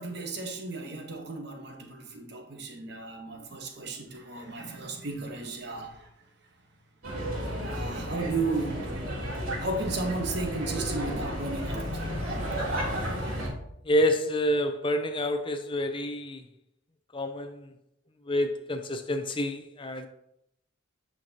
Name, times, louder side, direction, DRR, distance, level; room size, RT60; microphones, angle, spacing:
voice 1, 0.0-6.1 7.6-8.8 9.6-12.1, right 3 dB, 55° right, 1.1 m, -34 dB
sound 1, 7.0-13.5, equal, 80° right, 3.1 m, -32 dB
voice 2, 13.8-16.4 17.1-17.7 18.3-20.1, equal, 25° left, 0.6 m, -28 dB
9.3 x 5.9 x 2.9 m
head